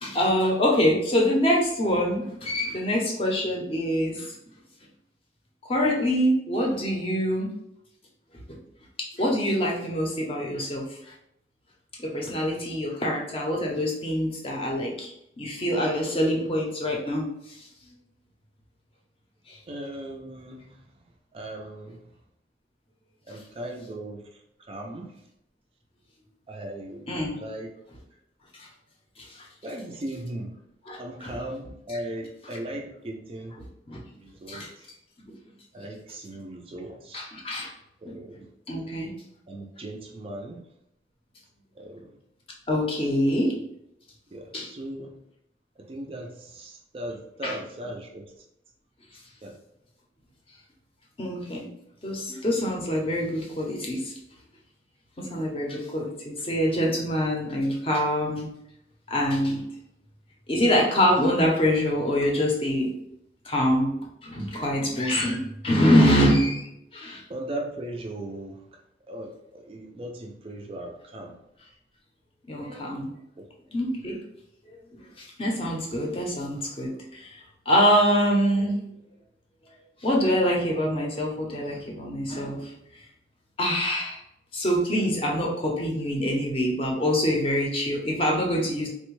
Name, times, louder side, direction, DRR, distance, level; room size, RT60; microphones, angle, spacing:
voice 1, 0.0-4.3 5.6-7.6 8.5-8.6 9.0-10.9 12.0-15.1 15.4-17.6 19.5-19.6 27.1-27.4 29.2-29.5 30.9-31.3 33.9-34.0 34.5-34.7 35.3-35.4 37.1-37.7 38.1-38.2 38.7-39.1 42.7-43.5 44.5-44.7 47.4-47.6 51.2-51.7 52.0-54.1 55.2-58.5 59.1-59.6 60.5-62.9 63.4-63.9 64.2-66.7 66.9-67.2 72.5-73.1 73.7-74.2 74.9-77.3 77.7-78.8 80.0-82.7 83.6-84.2 84.5-88.9, equal, 30° left, -1 dB, 0.6 m, -25 dB
voice 2, 19.7-20.8 21.3-22.0 23.3-24.2 24.7-25.1 26.5-27.7 29.6-30.5 31.0-33.6 34.1-34.6 35.7-37.2 38.0-38.5 39.5-40.6 41.8-42.2 43.3-43.4 44.3-45.2 45.9-48.3 49.4-49.5 67.3-68.6 69.1-71.3 73.4-73.5, right 1 dB, 30° right, 2 dB, 0.3 m, -37 dB
3.3 x 2.1 x 3.0 m, 0.80 s
head